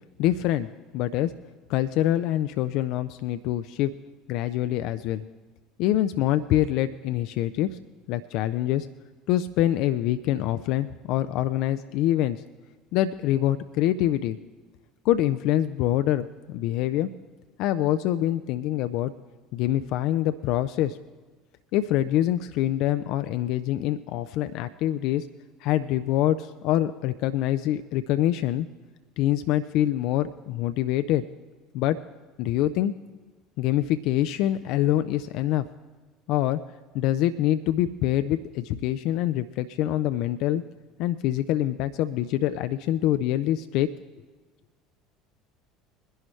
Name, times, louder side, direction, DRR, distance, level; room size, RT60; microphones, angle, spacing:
voice 1, 0.2-0.7 0.9-1.3 1.7-3.9 4.3-5.2 5.8-7.7 8.1-8.9 9.3-12.4 12.9-14.4 15.0-17.1 17.6-19.1 19.5-21.0 21.7-25.2 25.6-28.7 29.2-31.2 31.7-32.0 32.4-32.9 33.6-35.7 36.3-36.6 36.9-40.6 41.0-43.9, left 13 dB, 60° left, 11 dB, 0.4 m, -25 dB
21.5 x 11.0 x 3.2 m, 1.3 s
figure-of-eight pair, 65°, 0 cm